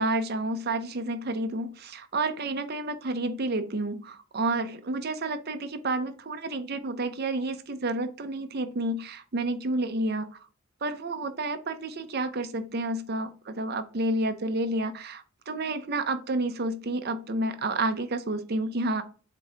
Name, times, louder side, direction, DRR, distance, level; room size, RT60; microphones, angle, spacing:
voice 1, 0.0-10.4 10.8-19.0, right 2 dB, 45° right, 8 dB, 0.6 m, -30 dB
7.5 x 2.8 x 4.8 m, 0.39 s
head